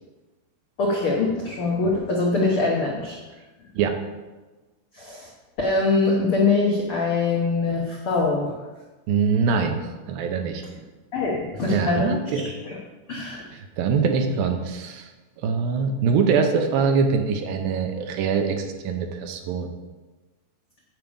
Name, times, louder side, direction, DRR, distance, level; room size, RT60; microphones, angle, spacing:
voice 1, 0.8-3.2 4.9-5.3 5.6-8.5 11.1-12.8 13.1-13.5, left 3 dB, 85° left, -2 dB, 1.2 m, -23 dB
voice 2, 9.1-9.8 10.1-10.6 11.6-12.5 13.5-15.1 15.4-19.7, right 5 dB, 80° right, 5 dB, 2.6 m, -23 dB
9.3 x 5.0 x 7.1 m, 1.2 s
omnidirectional pair, 4.3 m